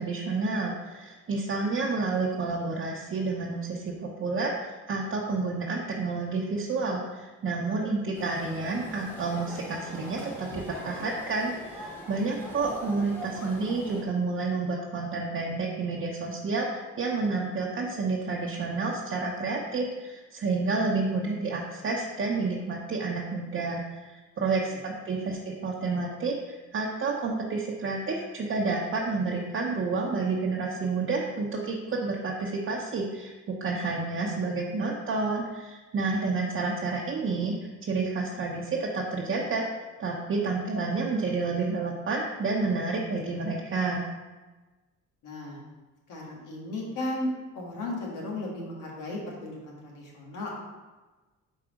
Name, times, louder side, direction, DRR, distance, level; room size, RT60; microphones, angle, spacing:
voice 1, 0.0-37.6 37.9-39.7 40.0-44.1, right 3 dB, 45° right, -3 dB, 0.8 m, -30 dB
sound 1, 8.1-14.0, equal, 5° left, 1.7 m, -42 dB
voice 2, 45.2-45.6 46.1-50.5, left 1 dB, 85° left, -2 dB, 1.6 m, -35 dB
4.7 x 4.1 x 5.1 m, 1.2 s
cardioid pair, 90°, 30 cm